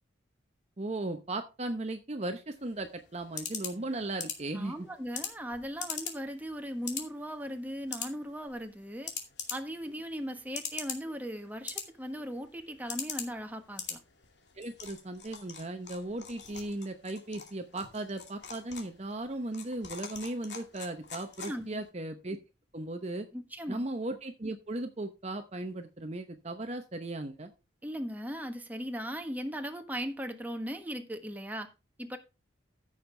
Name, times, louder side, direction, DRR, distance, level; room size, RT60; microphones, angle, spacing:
voice 1, 0.8-4.7 14.6-22.4 22.7-23.3 23.7-27.5, right 2 dB, 35° right, 0.9 m, -37 dB
sound 1, 2.5-21.9, left 7 dB, 65° left, 2.4 m, -43 dB
voice 2, 4.5-9.1 9.5-14.0 21.4-21.8 23.3-23.8 27.8-31.7 32.0-32.2, equal, 10° right, 1.3 m, -38 dB
15.0 x 6.6 x 3.3 m
head